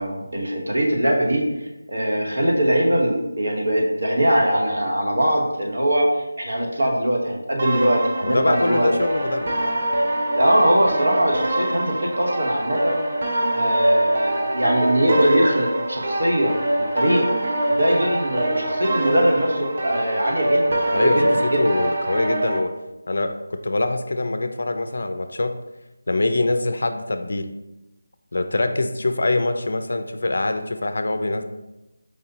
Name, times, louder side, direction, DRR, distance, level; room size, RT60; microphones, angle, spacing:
voice 1, 0.0-1.5 1.9-6.1 6.4-8.9 10.3-13.0 13.5-17.2 17.7-21.7, equal, 80° right, 0 dB, 0.9 m, -21 dB
sound 1, 7.6-22.6, right 1 dB, 50° right, 0.7 m, -24 dB
voice 2, 8.2-9.5 20.9-22.7 23.1-25.6 26.1-27.5 28.3-31.4, left 2 dB, 65° left, 8 dB, 0.3 m, -24 dB
4.7 x 2.8 x 2.7 m, 0.97 s
figure-of-eight pair, 165°, 0 cm